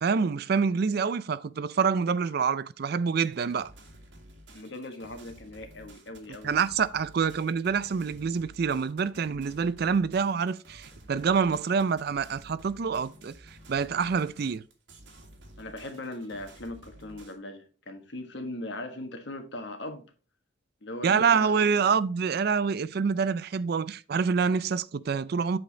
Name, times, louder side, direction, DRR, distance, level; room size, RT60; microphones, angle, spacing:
voice 1, 0.0-3.7 6.4-13.3 13.7-14.6 21.0-25.6, right 5 dB, 55° right, 0.4 m, -26 dB
sound 1, 3.2-17.4, right 1 dB, 70° right, 1.8 m, -52 dB
voice 2, 4.5-6.6 15.6-20.1 20.8-21.7, left 1 dB, 65° left, 1.4 m, -39 dB
7.9 x 5.1 x 4.0 m
head